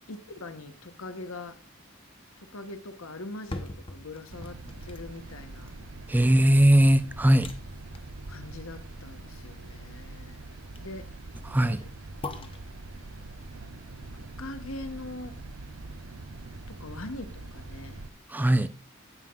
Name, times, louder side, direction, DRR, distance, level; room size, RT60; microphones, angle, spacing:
voice 1, 0.1-1.6 2.4-5.7 8.3-10.5 10.8-11.1 11.6-11.8 12.3-12.5 14.1-15.4 16.7-18.0, left 2 dB, 85° left, 1.1 m, -42 dB
sound 1, 3.3-15.3 15.7-15.8, left 2 dB, 25° left, 0.8 m, -45 dB
sound 2, 4.3-18.1, right 2 dB, 75° right, 0.8 m, -43 dB
voice 2, 6.1-7.5 11.5-11.8 18.3-18.7, right 1 dB, 10° right, 0.4 m, -20 dB
16.5 x 5.6 x 2.4 m
head